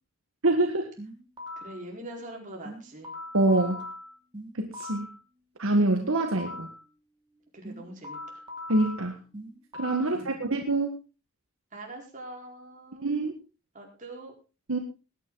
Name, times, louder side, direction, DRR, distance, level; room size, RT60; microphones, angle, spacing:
voice 1, 0.4-0.9 3.3-3.9 4.6-5.1 5.6-6.7 8.7-9.2 9.8-11.0 13.0-13.3 14.7-14.8, right 2 dB, 70° right, 4 dB, 1.7 m, -25 dB
sound 1, 1.0-1.8 2.6-5.2 6.0-6.8 7.6-10.2, left 1 dB, 20° right, 3.0 m, -41 dB
voice 2, 1.6-3.1 7.5-8.4 10.1-10.4 11.7-13.1 13.7-14.3, right 1 dB, 35° right, 0 dB, 4.7 m, -43 dB
20.0 x 9.6 x 4.0 m, 0.32 s
head